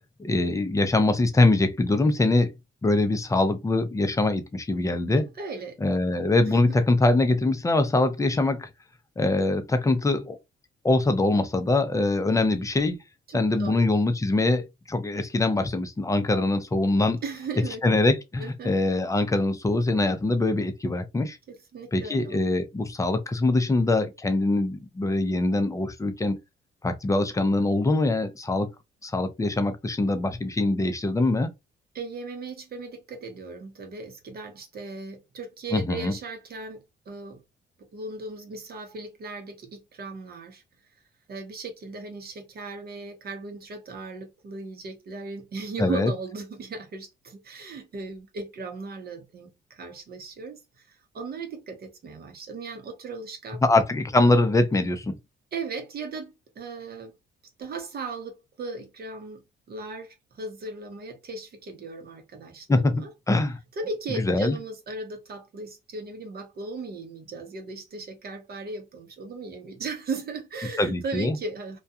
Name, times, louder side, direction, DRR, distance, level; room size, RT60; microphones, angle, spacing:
voice 1, 0.2-2.5 2.8-5.3 5.8-8.7 9.2-10.4 10.8-13.0 13.3-17.2 17.8-21.4 21.9-26.4 26.8-28.7 29.0-31.5 35.7-36.1 45.8-46.1 53.6-55.1 62.7-63.6 64.3-64.6 70.8-71.4, left 2 dB, 15° left, 0.5 m, -23 dB
voice 2, 5.1-5.8 6.5-6.6 13.3-13.9 17.2-17.8 18.4-18.7 21.5-22.4 31.9-37.4 37.9-40.6 41.3-53.6 55.5-57.1 57.6-59.4 59.7-63.1 63.8-71.8, right 3 dB, 50° right, 0.8 m, -37 dB
2.3 x 2.2 x 2.7 m
cardioid pair, 90°, 20 cm